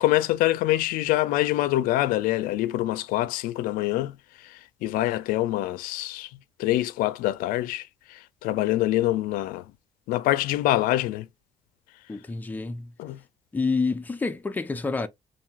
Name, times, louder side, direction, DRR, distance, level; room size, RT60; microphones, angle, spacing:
voice 1, 0.0-9.7 10.1-11.3 13.0-13.2, left 16 dB, 90° left, 0.4 m, -25 dB
voice 2, 12.1-12.9 13.5-15.1, left 4 dB, 10° left, 0.4 m, -28 dB
5.5 x 2.6 x 2.3 m
cardioid pair, 125°, 14 cm